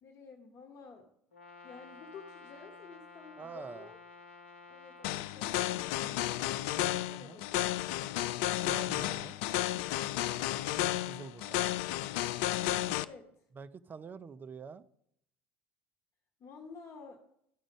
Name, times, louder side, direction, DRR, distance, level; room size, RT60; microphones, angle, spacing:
voice 1, 0.0-1.1 1.6-4.0 4.7-7.8 12.6-13.4 16.4-17.2, left 5 dB, 45° left, 3 dB, 1.1 m, -52 dB
Brass instrument, 1.3-5.3, left 4 dB, 85° left, 0.9 m, -52 dB
voice 2, 3.4-3.9 7.0-7.4 8.6-9.4 11.1-11.6 13.5-14.8, right 5 dB, 30° right, 14 dB, 0.5 m, -46 dB
sound 1, 5.0-13.1, left 15 dB, 65° left, 0.3 m, -32 dB
12.5 x 5.0 x 5.4 m, 0.73 s
hypercardioid pair, 70°, 7 cm